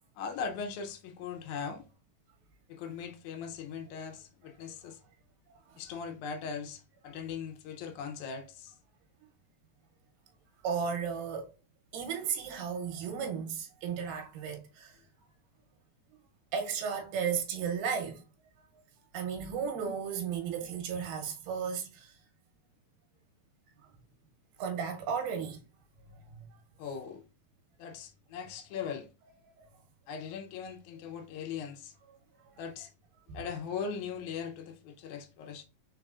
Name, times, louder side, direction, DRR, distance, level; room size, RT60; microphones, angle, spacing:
voice 1, 0.2-1.8 2.7-5.0 5.8-8.8 26.8-27.2 27.8-29.1 30.1-31.9 32.6-32.9 33.3-35.6, left 6 dB, 75° left, 1.9 m, -39 dB
voice 2, 10.6-11.5 11.9-15.0 16.5-18.2 19.1-22.1 24.6-25.6 26.1-26.4 29.6-29.7 32.4-32.5 33.3-33.4, right 7 dB, 90° right, 2.5 m, -34 dB
4.7 x 3.8 x 2.4 m
omnidirectional pair, 3.7 m